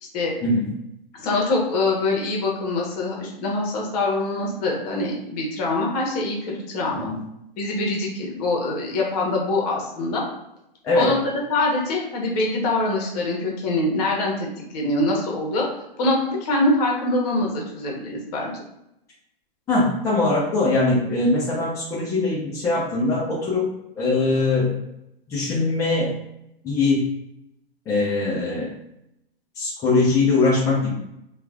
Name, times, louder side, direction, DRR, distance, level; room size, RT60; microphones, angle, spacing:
voice 1, 1.1-7.1 7.6-10.2 10.9-15.6 16.0-18.5, left 2 dB, 40° left, -2 dB, 1.0 m, -24 dB
voice 2, 19.7-23.7 24.0-24.7 25.3-26.1 26.6-27.0 27.9-28.7 29.6-30.9, left 3 dB, 10° left, -7 dB, 0.5 m, -21 dB
3.0 x 2.3 x 2.3 m, 0.84 s
hypercardioid pair, 120°, 30 cm